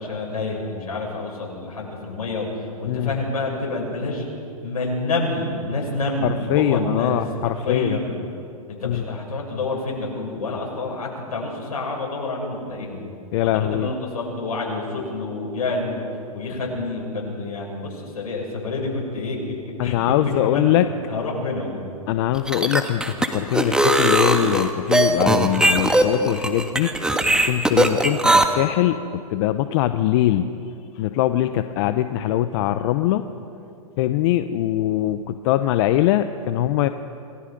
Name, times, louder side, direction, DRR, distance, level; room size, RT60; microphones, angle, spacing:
voice 1, 0.0-4.3 4.6-8.1 8.7-13.0 13.5-16.0 16.3-19.6 19.8-20.1 20.4-20.7 21.1-21.8 27.9-28.3, left 2 dB, 75° left, -1 dB, 7.4 m, -28 dB
voice 2, 6.2-8.0 8.8-9.0 13.3-13.9 19.8-20.8 22.1-26.9 27.4-30.5 31.0-33.3 34.0-36.9, left 13 dB, 45° left, 10 dB, 0.8 m, -22 dB
sound 1, 22.3-28.4, right 1 dB, 5° right, 1.5 m, -19 dB
28.0 x 19.5 x 5.3 m, 2.5 s
hypercardioid pair, 120°, 19 cm